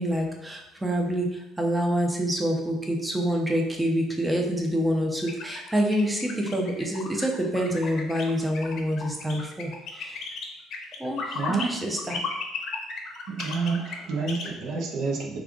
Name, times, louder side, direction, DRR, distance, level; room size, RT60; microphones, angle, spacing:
voice 1, 0.0-10.3 11.0-12.2, equal, 15° right, 1 dB, 0.8 m, -27 dB
sound 1, 5.3-11.6 12.0-14.5, left 5 dB, 60° left, 0.7 m, -35 dB
voice 2, 11.3-11.7 13.3-15.4, right 4 dB, 65° right, -1 dB, 0.7 m, -29 dB
3.5 x 2.5 x 3.5 m, 0.99 s
hypercardioid pair, 65°, 0 cm